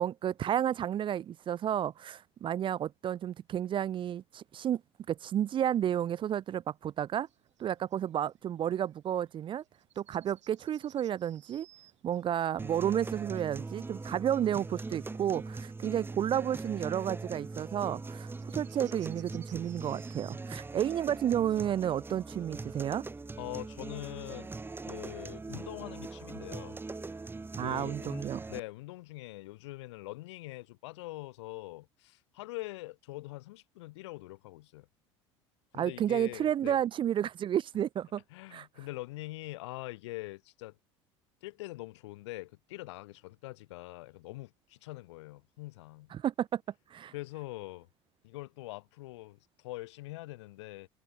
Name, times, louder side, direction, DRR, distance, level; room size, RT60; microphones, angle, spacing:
voice 1, 0.0-4.8 5.1-7.3 7.6-9.6 10.0-11.7 12.0-23.1 27.5-28.4 35.8-38.2 38.5-38.7 46.1-46.6 46.9-47.1, right 10 dB, 35° right, 0.5 m, -31 dB
sound 1, 7.2-24.6, right 11 dB, 80° right, 1.6 m, -63 dB
sound 2, 12.6-28.6, right 3 dB, 15° right, 1.1 m, -41 dB
voice 2, 23.4-24.5 24.9-26.8 27.6-34.9 35.7-36.8 38.3-40.8 41.4-46.1 47.1-47.9 48.2-50.9, left 19 dB, 70° left, 1.8 m, -43 dB
hypercardioid pair, 70°, 15 cm